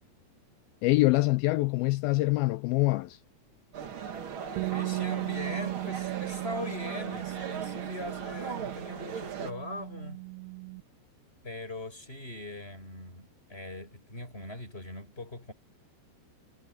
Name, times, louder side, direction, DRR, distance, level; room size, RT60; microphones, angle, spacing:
voice 1, 0.8-3.2, left 20 dB, 85° left, 2.1 m, -25 dB
sound 1, 3.7-9.5, right 7 dB, 65° right, 1.3 m, -38 dB
Bass guitar, 4.6-10.8, right 28 dB, 85° right, 2.2 m, -37 dB
voice 2, 4.7-10.2 11.4-15.5, left 1 dB, 15° left, 6.0 m, -40 dB
omnidirectional pair, 4.9 m